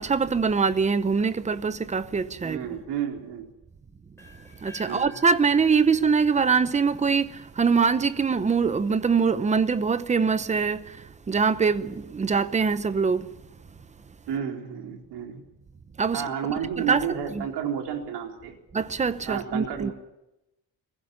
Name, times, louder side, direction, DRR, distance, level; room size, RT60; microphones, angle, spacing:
voice 1, 0.0-2.6 4.6-10.8 11.3-13.3 16.0-16.2 16.8-17.0 17.3-17.4 18.7-19.9, right 5 dB, 20° right, 0.8 m, -23 dB
voice 2, 2.4-3.5 4.8-5.2 14.3-15.4 16.1-18.5 19.3-19.9, right 8 dB, 80° right, 4.2 m, -31 dB
sound 1, 4.2-8.1, left 2 dB, 5° left, 6.5 m, -50 dB
21.5 x 15.5 x 9.8 m
cardioid pair, 170°, 40 cm